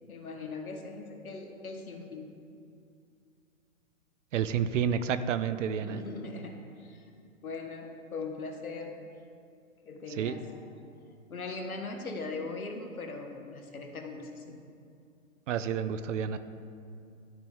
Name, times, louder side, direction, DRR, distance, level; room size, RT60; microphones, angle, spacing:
voice 1, 0.1-2.3 5.8-7.1 7.4-9.0 9.8-10.5 11.3-14.6, left 3 dB, 90° left, 4 dB, 1.2 m, -40 dB
voice 2, 4.3-6.0 10.2-10.4 15.5-16.4, right 8 dB, 60° right, 12 dB, 0.6 m, -30 dB
12.5 x 4.9 x 3.6 m, 2.4 s
hypercardioid pair, 125°, 42 cm